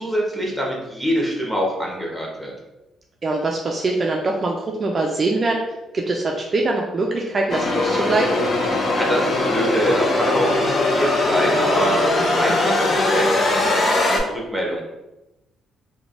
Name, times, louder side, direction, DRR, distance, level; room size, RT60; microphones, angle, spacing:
voice 1, 0.0-2.5 8.9-14.8, equal, ahead, -2 dB, 0.9 m, -24 dB
voice 2, 3.2-5.6 5.9-8.4, right 2 dB, 40° right, 0 dB, 0.3 m, -23 dB
sound 1, 7.5-14.2, left 2 dB, 50° left, 0.5 m, -20 dB
3.2 x 2.1 x 2.5 m, 0.99 s
cardioid pair, 90°, 0 cm